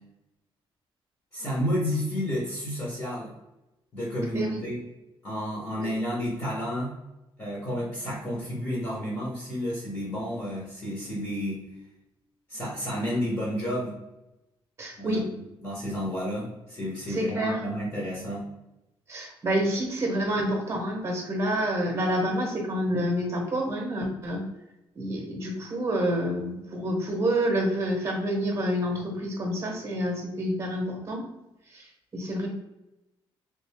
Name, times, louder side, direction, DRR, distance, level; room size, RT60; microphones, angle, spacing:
voice 1, 1.3-3.3 3.9-4.8 5.2-6.9 7.4-11.6 12.5-14.0 15.0-18.4, equal, 30° left, -5 dB, 1.0 m, -31 dB
voice 2, 14.8-15.2 17.1-17.6 19.1-24.4 24.9-31.2 31.7-31.9 32.1-32.5, equal, 30° right, 1 dB, 0.9 m, -28 dB
3.4 x 2.6 x 3.3 m, 0.95 s
cardioid pair, 165°, 10 cm